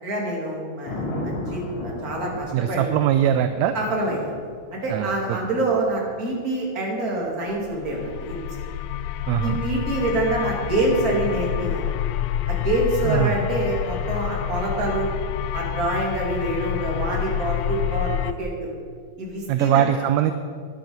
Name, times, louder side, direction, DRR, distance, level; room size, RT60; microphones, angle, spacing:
voice 1, 0.0-2.9 3.7-4.3 4.7-8.4 9.4-11.8 12.5-15.1 15.5-18.7 19.2-19.9, right 2 dB, 30° right, -2 dB, 2.7 m, -26 dB
Thunder, 0.8-8.9 11.6-12.0, left 1 dB, 65° left, 4.2 m, -37 dB
voice 2, 2.5-3.7 4.9-5.4 9.3-9.6 13.0-13.4 19.5-20.3, right 10 dB, 80° right, 9 dB, 1.7 m, -21 dB
sound 1, 7.6-18.3, left 11 dB, 90° left, 2.1 m, -28 dB
13.0 x 10.5 x 5.3 m, 2.1 s
omnidirectional pair, 3.5 m